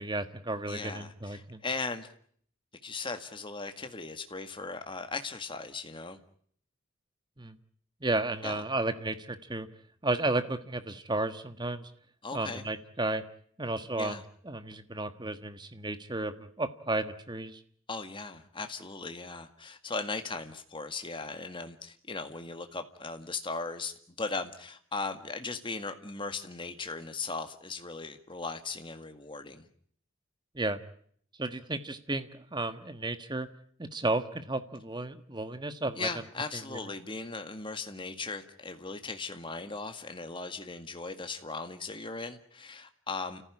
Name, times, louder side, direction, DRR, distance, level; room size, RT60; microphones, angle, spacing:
voice 1, 0.0-1.6 7.4-7.6 8.0-9.7 10.0-11.9 12.3-13.2 13.6-14.1 14.4-17.6 30.5-30.8 31.4-33.5 33.8-36.1, right 2 dB, 20° right, 10 dB, 1.5 m, -33 dB
voice 2, 0.7-2.1 2.8-6.2 8.4-8.6 12.2-12.7 14.0-14.2 17.9-29.7 35.9-43.4, left 3 dB, 25° left, 7 dB, 1.9 m, -38 dB
30.0 x 15.0 x 9.9 m, 0.62 s
head